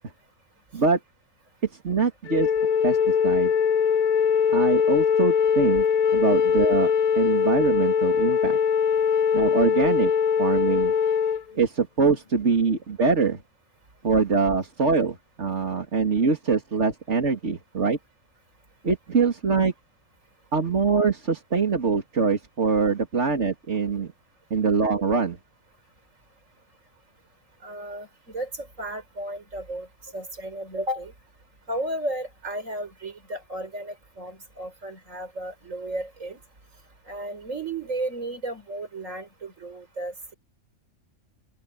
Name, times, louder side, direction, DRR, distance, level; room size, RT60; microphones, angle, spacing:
voice 1, 1.8-2.5 2.8-3.5 4.5-5.9 6.1-8.6 9.3-10.1 10.4-10.9 11.5-13.4 14.0-18.0 18.8-19.7 20.5-24.1 24.5-25.4, right 4 dB, 65° right, 2.7 m, -23 dB
Wind instrument woodwind instrument, 2.3-11.4, left 7 dB, 65° left, 0.4 m, -21 dB
voice 2, 27.6-29.9 30.1-31.1 31.7-36.4 37.1-40.3, right 1 dB, 80° right, 5.2 m, -34 dB
open air
omnidirectional pair, 1.3 m